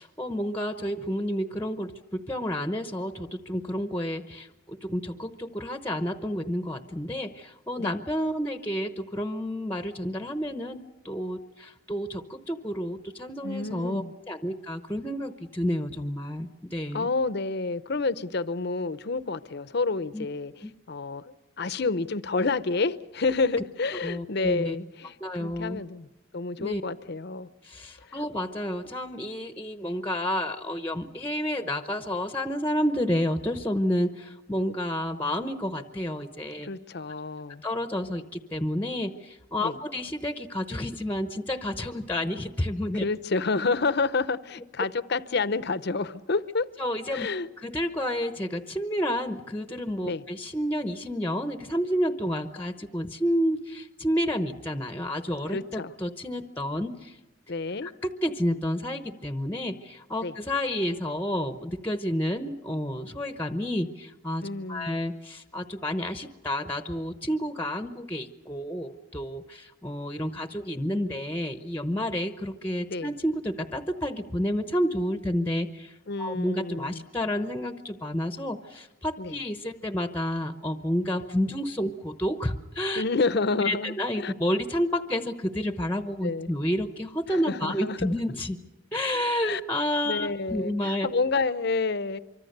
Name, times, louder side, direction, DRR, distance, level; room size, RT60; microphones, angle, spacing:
voice 1, 0.0-10.8 11.0-17.1 20.1-20.3 20.6-20.7 24.0-24.7 25.2-25.8 26.6-26.8 27.6-36.7 37.6-43.0 46.8-47.3 47.6-57.2 57.8-83.0 83.5-88.6 88.9-91.1, equal, 10° left, 8 dB, 0.9 m, -30 dB
voice 2, 13.4-14.1 16.9-27.5 28.1-28.2 36.6-37.6 39.6-39.7 42.9-46.7 47.1-47.5 50.0-50.2 55.5-55.9 57.5-57.9 60.2-60.3 64.4-65.0 72.9-73.1 76.1-77.0 79.2-79.4 83.0-84.3 86.2-86.5 87.3-88.2 89.4-89.6 90.0-92.2, left 3 dB, 55° left, 15 dB, 0.7 m, -29 dB
25.0 x 24.5 x 6.7 m, 1.0 s
head